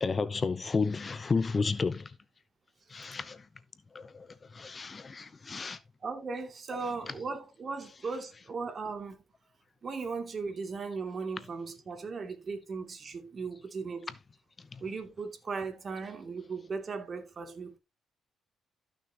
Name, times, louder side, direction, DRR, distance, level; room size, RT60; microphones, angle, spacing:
voice 1, 0.0-2.1 2.9-3.4 3.9-4.3 4.5-5.8, left 4 dB, 35° left, 0.8 m, -31 dB
voice 2, 6.0-9.2 9.8-14.1 14.8-17.8, right 4 dB, 45° right, 2.6 m, -37 dB
14.5 x 6.3 x 2.9 m
cardioid pair, 90°, 0 cm